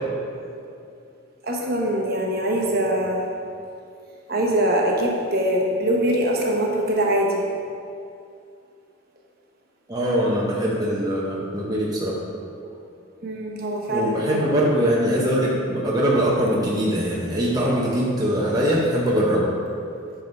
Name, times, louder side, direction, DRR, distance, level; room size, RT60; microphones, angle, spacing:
voice 1, 1.4-3.2 4.3-7.5 13.2-14.6, right 1 dB, 45° right, -1 dB, 0.9 m, -23 dB
voice 2, 9.9-12.2 13.9-19.5, equal, 20° right, -5 dB, 0.7 m, -22 dB
8.7 x 3.7 x 5.2 m, 2.5 s
head